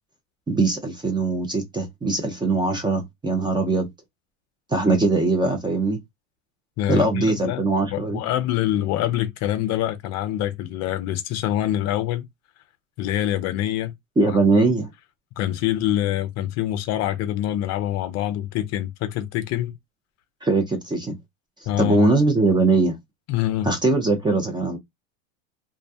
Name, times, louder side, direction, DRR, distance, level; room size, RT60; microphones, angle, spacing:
voice 1, 0.5-3.9 4.7-6.0 6.9-8.2 14.2-14.9 20.4-21.2 21.8-23.0 23.7-24.8, right 3 dB, 10° right, 0.5 m, -21 dB
voice 2, 6.8-7.6 7.9-12.3 13.0-13.9 14.3-14.4 15.4-19.8 21.7-22.1 23.3-23.7, left 12 dB, 40° left, 0.5 m, -25 dB
2.3 x 2.1 x 2.7 m
supercardioid pair, 115°, 40 cm